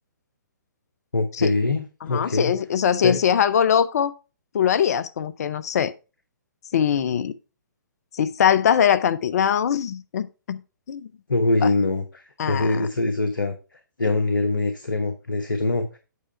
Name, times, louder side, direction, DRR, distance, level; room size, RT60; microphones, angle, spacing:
voice 1, 1.1-2.5 3.0-3.2 11.3-13.6 14.0-15.9, left 2 dB, 85° left, 1.0 m, -23 dB
voice 2, 2.1-4.1 4.5-5.9 6.7-7.3 8.1-10.6 10.9-11.1 11.6-11.7 12.4-12.9, left 8 dB, 55° left, 0.6 m, -22 dB
8.4 x 4.8 x 4.5 m
figure-of-eight pair, 130°, 10 cm